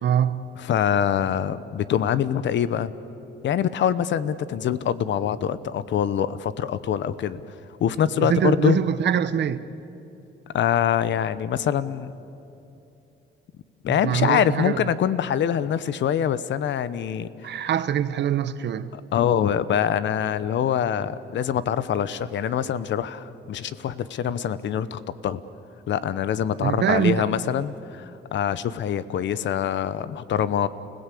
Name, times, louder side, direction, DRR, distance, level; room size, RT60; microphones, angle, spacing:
voice 1, 0.0-0.5 8.2-9.7 13.9-14.8 17.4-18.9 26.6-27.3, right 9 dB, 60° right, 1.0 m, -24 dB
voice 2, 0.6-2.9 3.4-7.4 7.8-8.8 10.5-12.1 13.8-17.7 18.9-25.4 25.9-30.7, left 9 dB, 65° left, 0.9 m, -24 dB
30.0 x 16.5 x 8.5 m
cardioid pair, 90°, 20 cm